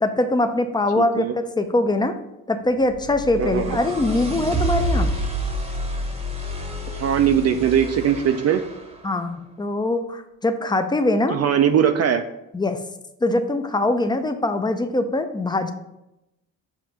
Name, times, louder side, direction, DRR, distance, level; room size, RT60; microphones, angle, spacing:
voice 1, 0.0-2.2 2.5-5.1 9.0-11.4 12.5-12.8 13.2-15.7, left 2 dB, 15° left, 8 dB, 0.4 m, -22 dB
voice 2, 1.0-1.3 3.4-3.8 6.9-8.6 11.3-12.2, right 8 dB, 50° right, 7 dB, 0.4 m, -20 dB
sound 1, 2.9-9.0, right 1 dB, 15° right, 0.9 m, -28 dB
7.2 x 2.5 x 5.7 m, 0.89 s
cardioid pair, 120°, 35 cm